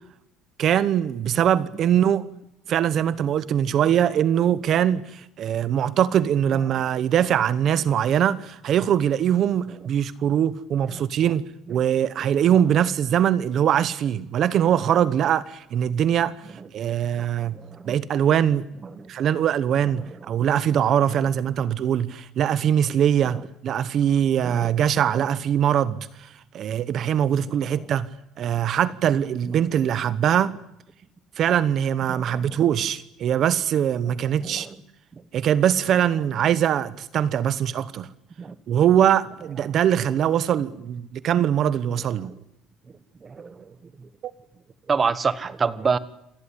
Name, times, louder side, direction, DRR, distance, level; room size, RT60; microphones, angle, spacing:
voice 1, 0.6-2.3 2.7-16.4 16.7-17.6 17.9-18.7 19.1-28.1 28.4-30.5 31.4-34.7 35.3-38.1 38.7-42.3, right 9 dB, 40° right, 1.0 m, -22 dB
voice 2, 17.1-17.9 18.9-19.1 21.1-21.3 23.3-23.4 24.4-24.7 27.6-27.8 32.1-32.4 34.4-34.7 38.4-38.5 43.2-43.7 44.0-44.1 44.9-46.0, right 5 dB, 20° right, 1.2 m, -28 dB
27.0 x 18.5 x 9.9 m
cardioid pair, 170°, 0 cm